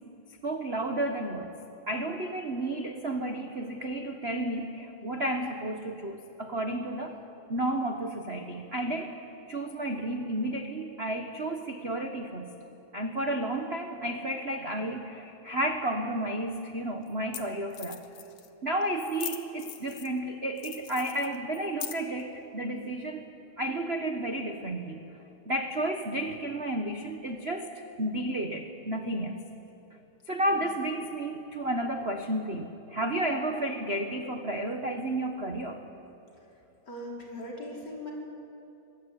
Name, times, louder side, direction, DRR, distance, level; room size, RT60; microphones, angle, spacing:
voice 1, 0.4-1.5 1.9-7.2 7.5-9.2 9.5-12.5 12.9-18.0 18.6-23.3 23.6-25.0 25.5-27.7 28.0-29.4 30.3-35.8, right 1 dB, 80° right, 4 dB, 0.5 m, -32 dB
sound 1, 16.3-16.4 17.1-17.2 17.3-17.4 17.7-18.5 19.0-20.2 20.6-22.2, left 11 dB, 80° left, 2.8 m, -40 dB
voice 2, 36.9-38.1, left 1 dB, 30° left, -2 dB, 5.6 m, -39 dB
25.0 x 21.5 x 9.8 m, 2.9 s
omnidirectional pair, 3.5 m